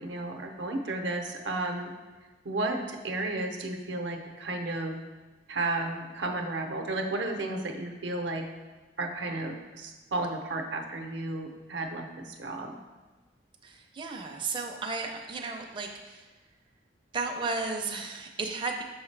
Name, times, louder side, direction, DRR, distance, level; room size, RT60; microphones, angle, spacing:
voice 1, 0.0-1.9 2.4-5.0 5.5-8.5 9.0-12.7, right 2 dB, 85° right, 3 dB, 0.7 m, -33 dB
voice 2, 13.6-16.3 17.1-18.8, right 4 dB, 30° right, 2 dB, 0.4 m, -34 dB
6.4 x 4.8 x 3.3 m, 1.3 s
head